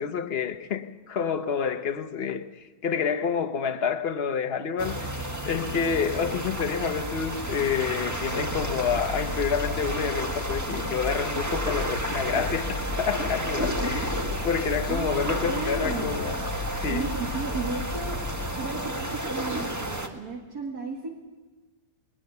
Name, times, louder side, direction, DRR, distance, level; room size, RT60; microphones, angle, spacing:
voice 1, 0.0-16.3 16.7-17.1, left 6 dB, 45° left, 1.1 m, -28 dB
sound 1, 4.8-20.1, right 1 dB, 10° right, 1.2 m, -32 dB
sound 2, 8.2-18.5, left 3 dB, 35° right, 7.0 m, -35 dB
voice 2, 14.9-16.2 16.9-18.2 18.6-21.1, right 4 dB, 65° right, 2.2 m, -34 dB
20.0 x 20.0 x 6.8 m
omnidirectional pair, 1.8 m